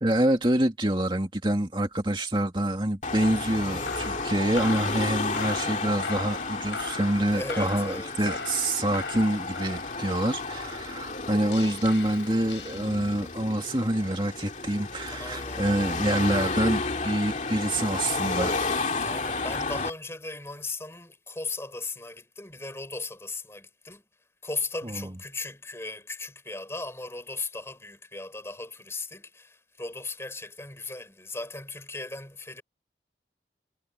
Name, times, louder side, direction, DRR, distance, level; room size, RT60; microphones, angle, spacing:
voice 1, 0.0-18.8 24.8-25.1, right 1 dB, 25° right, 2.5 m, -26 dB
Car passing by / Traffic noise roadway noise / Engine, 3.0-19.9, left 3 dB, 40° left, 2.4 m, -32 dB
sound 1, 3.2-13.4, left 4 dB, 85° left, 7.8 m, -40 dB
voice 2, 7.3-8.1 15.1-16.0 19.0-24.0 24.4-32.6, left 3 dB, 15° left, 4.2 m, -37 dB
head